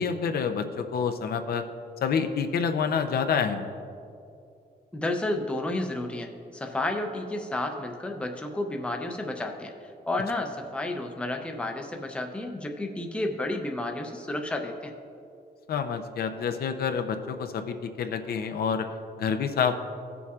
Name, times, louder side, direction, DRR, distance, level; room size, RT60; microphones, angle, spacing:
voice 1, 0.0-1.7 2.0-3.7 15.7-18.9 19.2-19.7, left 6 dB, 65° left, 7 dB, 0.6 m, -28 dB
voice 2, 4.9-9.7 10.1-14.9, left 2 dB, 5° left, 3 dB, 0.5 m, -31 dB
16.5 x 7.0 x 2.4 m, 2.6 s
wide cardioid pair, 170°, 17 cm